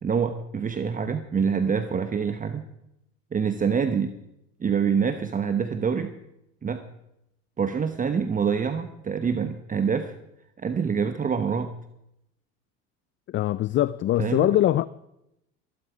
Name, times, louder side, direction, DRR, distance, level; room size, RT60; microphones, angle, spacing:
voice 1, 0.0-2.7 3.3-4.1 4.6-6.1 6.6-6.8 7.6-10.1 10.6-11.7 14.2-14.5, right 6 dB, 25° right, 1.1 m, -26 dB
voice 2, 13.3-14.9, left 13 dB, 40° left, 0.5 m, -22 dB
22.5 x 12.0 x 5.1 m
supercardioid pair, 90°, 31 cm